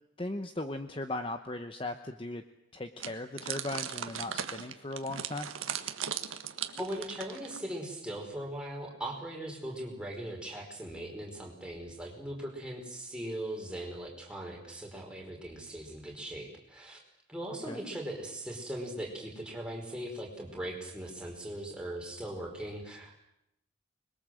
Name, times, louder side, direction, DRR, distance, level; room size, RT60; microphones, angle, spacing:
voice 1, 0.2-2.4 2.7-5.5 17.7-17.8, left 2 dB, 25° left, 7 dB, 1.0 m, -37 dB
sound 1, 3.0-7.7, right 9 dB, 80° right, 1.6 m, -38 dB
voice 2, 6.8-17.0 17.3-23.2, right 1 dB, 5° right, -1 dB, 4.8 m, -39 dB
25.5 x 22.0 x 7.8 m, 0.82 s
head